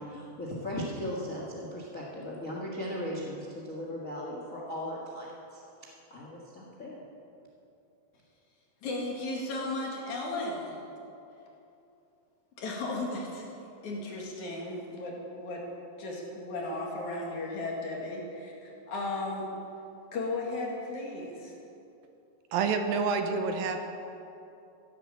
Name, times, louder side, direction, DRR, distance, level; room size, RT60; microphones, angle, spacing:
voice 1, 0.0-5.6 6.1-7.0, equal, 35° left, -3 dB, 1.3 m, -37 dB
voice 2, 8.8-10.8 12.6-13.4 13.8-15.6 16.0-19.5 20.1-21.5, left 2 dB, 55° left, -2 dB, 3.5 m, -35 dB
voice 3, 22.5-23.9, right 5 dB, 80° right, 6 dB, 2.6 m, -28 dB
15.5 x 11.5 x 7.4 m, 2.8 s
omnidirectional pair, 4.3 m